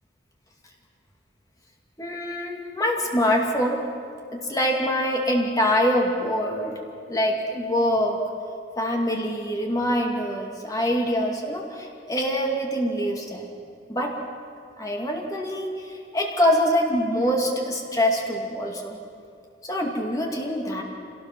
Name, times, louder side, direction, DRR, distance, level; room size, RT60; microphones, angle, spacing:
voice 1, 2.0-3.8 4.3-6.7 7.1-8.2 8.8-13.5 13.9-14.1 14.8-19.0 19.6-20.8, equal, 20° left, 0 dB, 2.4 m, -24 dB
25.5 x 18.5 x 6.1 m, 2.4 s
head